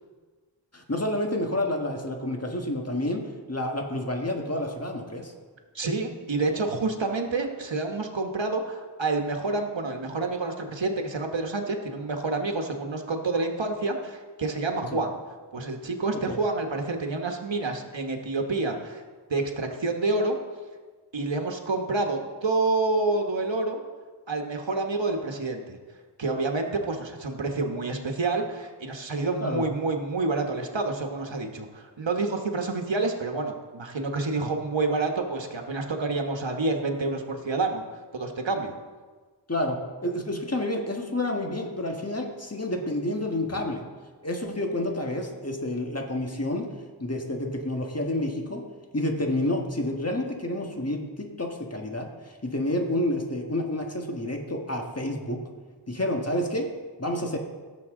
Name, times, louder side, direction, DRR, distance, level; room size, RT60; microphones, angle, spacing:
voice 1, 0.7-5.3 14.9-15.0 16.1-16.4 29.4-29.7 39.5-43.8 44.2-46.7 47.0-48.6 48.9-55.4 55.9-56.7 57.0-57.4, left 1 dB, 35° left, 2 dB, 1.6 m, -29 dB
voice 2, 5.7-15.2 15.5-19.0 19.3-20.3 21.1-23.8 24.3-25.8 26.2-37.8 38.1-38.7 43.5-43.6, right 3 dB, 85° right, 4 dB, 1.2 m, -28 dB
16.5 x 7.0 x 3.7 m, 1.4 s
wide cardioid pair, 40°, 44 cm